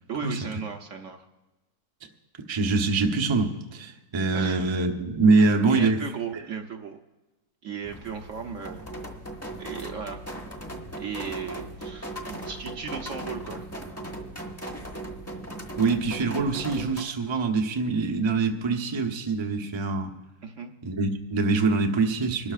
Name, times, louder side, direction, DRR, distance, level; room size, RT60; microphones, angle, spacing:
voice 1, 0.1-1.2 4.3-4.6 5.4-7.0 7.6-8.8 9.6-10.2 11.0-13.7 20.4-20.7, right 6 dB, 60° right, 4 dB, 1.0 m, -36 dB
voice 2, 2.5-6.0 15.8-20.1 20.8-22.5, right 3 dB, 25° right, 3 dB, 0.6 m, -24 dB
sound 1, 7.8-17.0, right 1 dB, 10° left, 1.1 m, -38 dB
26.0 x 12.5 x 2.4 m, 1.1 s
omnidirectional pair, 1.7 m